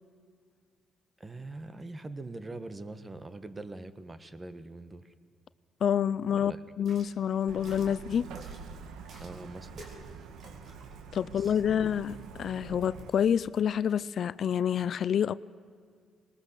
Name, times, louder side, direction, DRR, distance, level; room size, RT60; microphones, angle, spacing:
voice 1, 1.2-5.1 6.3-6.6 9.2-9.9 11.3-11.8, right 2 dB, 25° right, 1.3 m, -43 dB
voice 2, 5.8-8.3 11.1-15.3, left 8 dB, 60° left, 0.4 m, -28 dB
sound 1, 6.7-13.7, right 1 dB, 60° right, 4.0 m, -55 dB
Truck, 7.5-13.1, right 6 dB, 90° right, 1.3 m, -45 dB
20.5 x 19.5 x 6.8 m
cardioid pair, 90°, 0 cm